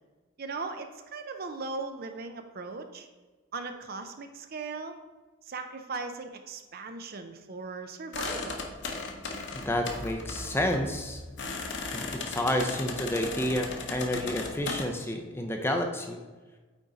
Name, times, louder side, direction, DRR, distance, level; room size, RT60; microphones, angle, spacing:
voice 1, 0.4-3.1 3.5-5.0 5.4-8.7, right 4 dB, 45° right, 7 dB, 0.5 m, -38 dB
sound 1, 8.1-14.9, left 3 dB, 55° left, 0.9 m, -36 dB
voice 2, 9.5-11.2 11.9-16.2, left 1 dB, 10° left, 4 dB, 0.5 m, -30 dB
8.8 x 3.8 x 3.9 m, 1.3 s
head